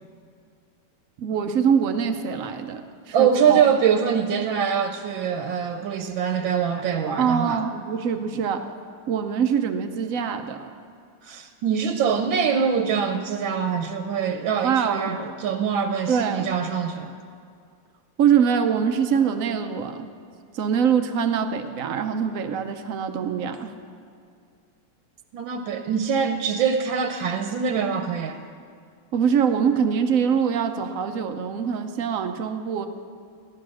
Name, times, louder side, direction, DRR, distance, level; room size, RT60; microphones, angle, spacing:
voice 1, 1.2-3.6 7.2-8.6 9.1-10.7 14.6-15.2 16.1-16.5 18.2-20.1 20.5-23.7 29.1-32.9, right 7 dB, 90° right, 7 dB, 0.7 m, -24 dB
voice 2, 3.1-7.6 11.2-17.1 25.3-28.4, right 7 dB, 70° right, 6 dB, 1.4 m, -24 dB
15.5 x 12.0 x 6.3 m, 2.3 s
omnidirectional pair, 2.4 m